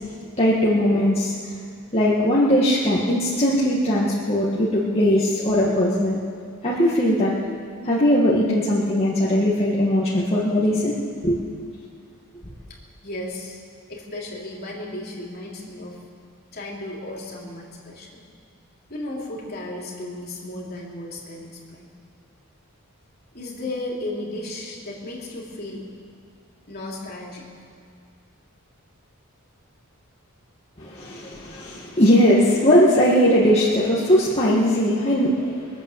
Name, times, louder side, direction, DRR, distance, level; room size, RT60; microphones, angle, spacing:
voice 1, 0.4-1.3 1.9-6.2 6.6-7.3 7.8-10.9 11.2-11.4 30.8-35.8, equal, 30° left, -7 dB, 1.8 m, -19 dB
voice 2, 13.0-13.6 13.9-16.0 16.5-18.2 18.9-21.9 23.3-25.8 26.7-27.5, left 1 dB, 45° left, -3 dB, 3.3 m, -34 dB
23.0 x 8.5 x 7.3 m, 2.3 s
head